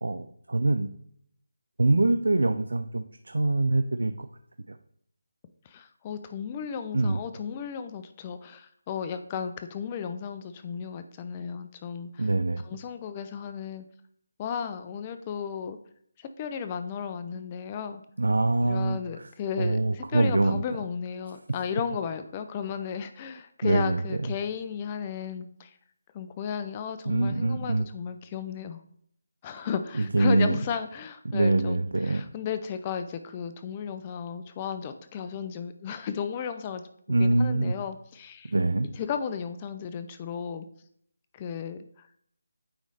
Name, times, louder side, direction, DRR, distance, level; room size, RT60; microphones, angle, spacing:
voice 1, 0.0-0.9 1.8-4.3 4.7-4.8 6.9-7.2 12.2-12.6 18.2-19.3 19.6-20.6 23.6-24.0 27.1-27.9 30.0-30.6 31.3-32.2 37.1-37.8 38.4-38.9, right 2 dB, 80° right, 9 dB, 0.4 m, -24 dB
voice 2, 5.6-12.3 12.6-13.8 14.4-15.8 16.2-18.0 18.6-25.8 26.1-28.8 29.4-31.8 32.0-36.8 37.1-38.5 38.9-40.7 41.3-42.1, left 7 dB, 20° left, 9 dB, 0.4 m, -34 dB
8.9 x 3.1 x 4.0 m, 0.66 s
figure-of-eight pair, 165°, 0 cm